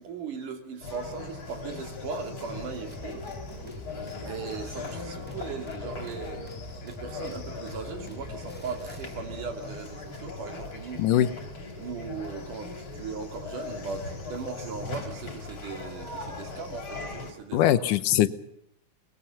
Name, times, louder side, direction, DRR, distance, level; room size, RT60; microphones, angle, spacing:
voice 1, 0.0-3.2 4.2-6.4 6.8-11.1 11.8-17.9, right 5 dB, 90° right, 5 dB, 4.1 m, -38 dB
sound 1, 0.8-17.3, left 3 dB, 40° left, 3.8 m, -39 dB
sound 2, 2.9-9.6, right 2 dB, 5° left, 1.1 m, -46 dB
voice 2, 11.0-11.3 17.5-18.3, left 12 dB, 90° left, 13 dB, 2.5 m, -21 dB
23.0 x 21.0 x 5.8 m, 0.78 s
omnidirectional pair, 3.5 m